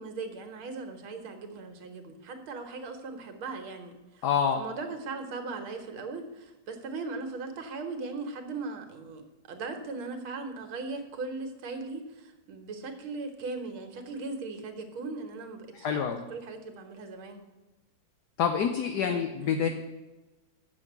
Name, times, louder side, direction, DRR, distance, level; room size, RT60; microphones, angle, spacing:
voice 1, 0.0-4.3 4.6-17.4 19.0-19.7, right 3 dB, 90° right, 6 dB, 2.1 m, -39 dB
voice 2, 4.2-4.6 15.7-16.2 18.4-19.7, left 7 dB, 65° left, 5 dB, 1.2 m, -27 dB
7.7 x 6.9 x 7.9 m, 1.1 s
omnidirectional pair, 2.2 m